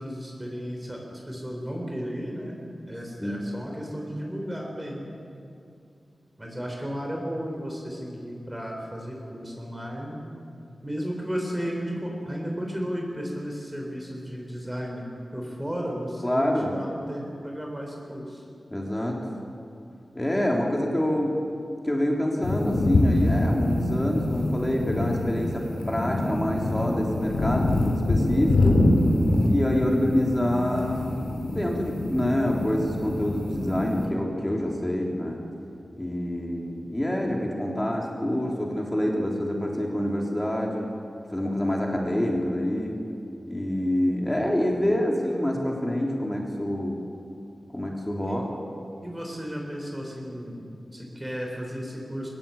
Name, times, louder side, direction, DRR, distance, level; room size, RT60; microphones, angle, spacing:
voice 1, 0.0-2.5 2.9-5.1 6.4-10.2 10.8-15.0 15.3-18.4 29.9-30.2 48.2-48.5 49.0-50.7 50.9-52.3, equal, 10° right, -1 dB, 4.1 m, -34 dB
voice 2, 16.2-16.7 18.7-19.3 20.1-21.4 21.8-28.9 29.5-31.2 31.5-35.4 36.0-40.9 41.3-43.0 43.5-47.0 47.7-48.4, left 1 dB, 10° left, -1 dB, 3.2 m, -26 dB
sound 1, 22.4-34.1, left 1 dB, 85° left, 4.1 m, -25 dB
23.0 x 20.5 x 8.6 m, 2.5 s
wide cardioid pair, 120°, 0 cm